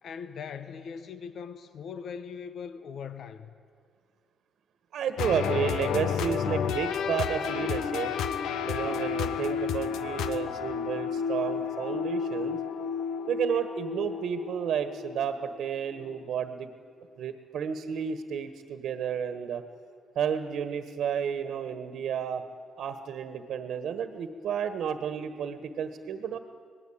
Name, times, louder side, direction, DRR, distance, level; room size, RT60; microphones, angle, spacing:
voice 1, 0.0-3.6, left 6 dB, 60° left, 1.1 m, -40 dB
voice 2, 4.9-8.2 8.7-12.6 13.2-16.7 17.2-19.6 20.1-22.4 22.8-26.4, right 8 dB, 70° right, 1.5 m, -31 dB
sound 1, 5.2-15.7, left 7 dB, 85° left, 1.1 m, -31 dB
25.0 x 19.0 x 8.8 m
cardioid pair, 90°, 0 cm